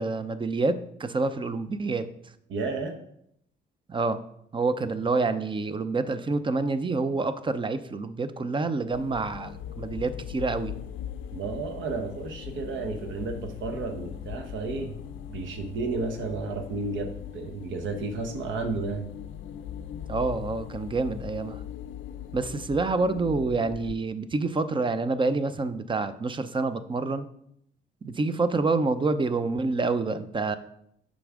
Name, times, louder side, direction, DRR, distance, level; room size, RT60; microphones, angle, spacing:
voice 1, 0.0-2.1 3.9-4.2 4.5-10.7 20.1-21.6 22.3-27.3 28.0-30.6, right 3 dB, 25° right, 12 dB, 0.5 m, -27 dB
voice 2, 2.5-3.0 11.3-14.9 15.3-19.1, right 3 dB, 75° right, 5 dB, 1.0 m, -32 dB
sound 1, 8.9-23.9, left 10 dB, 75° left, 0.4 m, -40 dB
7.0 x 5.1 x 3.6 m, 0.74 s
cardioid pair, 90°, 20 cm